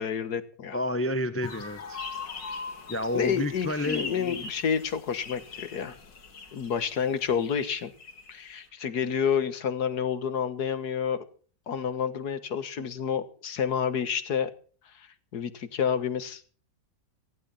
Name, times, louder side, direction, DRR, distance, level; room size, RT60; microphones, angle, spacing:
voice 1, 0.0-0.8 3.1-6.0 6.5-7.9 8.3-11.3 11.7-14.5 14.9-16.4, left 7 dB, 60° left, 13 dB, 1.9 m, -29 dB
voice 2, 0.7-2.0 2.4-2.6 2.9-4.4, left 1 dB, 20° left, 12 dB, 0.4 m, -30 dB
sound 1, 1.4-8.4, left 4 dB, 75° left, 2.8 m, -41 dB
18.0 x 15.0 x 4.1 m, 0.41 s
omnidirectional pair, 1.9 m